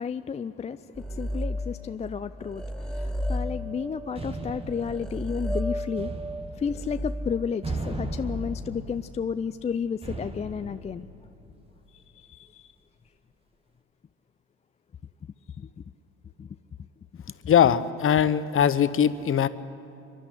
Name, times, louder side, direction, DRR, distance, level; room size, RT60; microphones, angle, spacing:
voice 1, 0.0-6.1 6.6-11.1 11.9-12.7 15.6-15.7 16.4-16.5 17.2-17.5, left 6 dB, 20° left, 11 dB, 0.4 m, -32 dB
sound 1, 1.0-2.1 2.4-9.0, equal, ahead, 0.8 m, -34 dB
sound 2, 3.3-12.0, right 2 dB, 15° right, 1.8 m, -39 dB
voice 2, 17.5-19.5, left 9 dB, 40° left, 14 dB, 0.9 m, -21 dB
23.5 x 11.5 x 10.0 m, 2.7 s
supercardioid pair, 75°, 33 cm